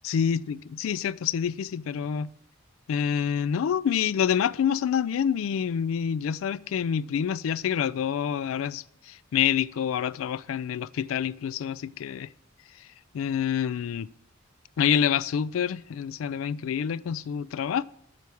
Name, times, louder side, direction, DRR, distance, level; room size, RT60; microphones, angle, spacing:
voice 1, 0.0-2.3 2.9-12.3 13.1-14.1 14.8-17.8, left 8 dB, 80° left, 0.3 m, -27 dB
9.1 x 4.7 x 7.0 m
head